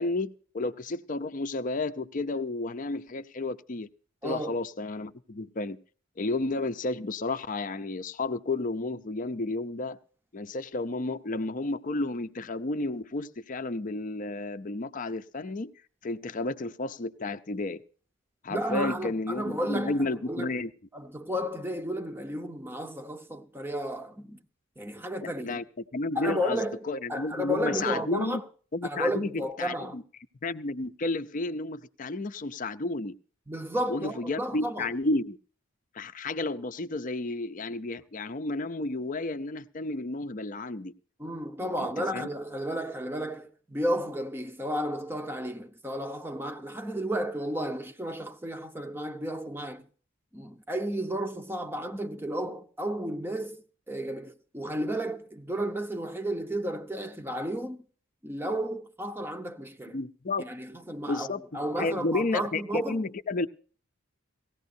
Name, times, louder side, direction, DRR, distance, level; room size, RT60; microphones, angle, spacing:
voice 1, 0.0-3.9 4.2-5.8 6.2-10.0 10.3-15.7 16.0-17.8 18.4-20.7 25.2-25.6 25.9-28.4 28.7-29.3 29.6-30.0 30.4-33.2 33.9-35.4 35.9-40.9 41.8-42.3 59.9-60.4 61.1-63.5, left 2 dB, 40° left, 0.6 m, -32 dB
voice 2, 4.2-4.5 18.5-20.5 20.9-24.4 24.8-25.6 26.2-26.8 27.1-28.4 28.8-30.0 33.5-34.9 41.2-49.9 50.3-57.8 58.2-60.0 60.4-63.0, equal, 10° right, 0.7 m, -33 dB
18.5 x 15.5 x 2.7 m
head